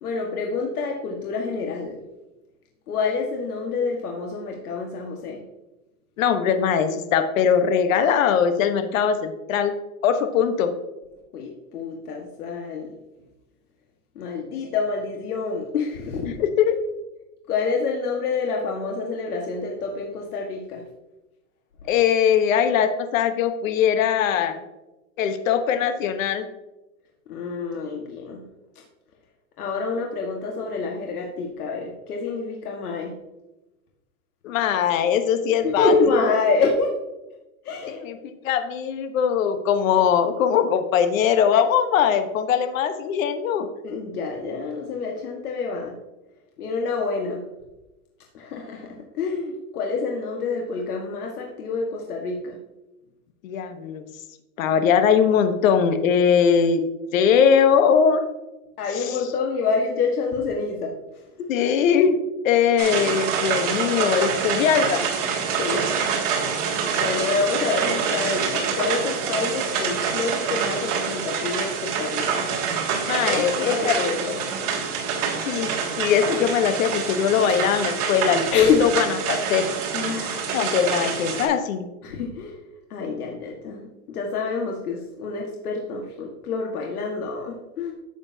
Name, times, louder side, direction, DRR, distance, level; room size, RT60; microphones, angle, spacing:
voice 1, 0.0-2.0 2.9-5.4 11.3-12.9 14.2-16.3 17.5-20.8 21.8-21.9 27.3-28.4 28.8-28.9 29.6-33.1 35.6-36.9 37.6-38.0 43.8-46.0 46.6-47.4 48.3-52.6 58.8-61.5 65.6-65.9 66.9-72.4 73.2-74.4 78.5-78.9 79.9-80.5 82.0-82.6 82.9-87.9, left 4 dB, 90° left, 0 dB, 1.7 m, -27 dB
voice 2, 6.2-9.7 10.0-10.7 16.4-16.8 21.9-24.5 25.2-26.4 34.4-35.9 37.8-43.7 53.4-54.0 54.6-56.8 57.1-58.2 59.0-59.2 61.5-62.2 62.4-65.1 73.0-74.0 74.3-74.4 75.4-75.7 76.0-79.6 80.5-81.9, left 7 dB, 65° left, 8 dB, 1.2 m, -21 dB
sound 1, 62.8-81.5, right 6 dB, 55° right, 3.2 m, -26 dB
12.0 x 8.1 x 2.8 m, 1.0 s
supercardioid pair, 150°, 43 cm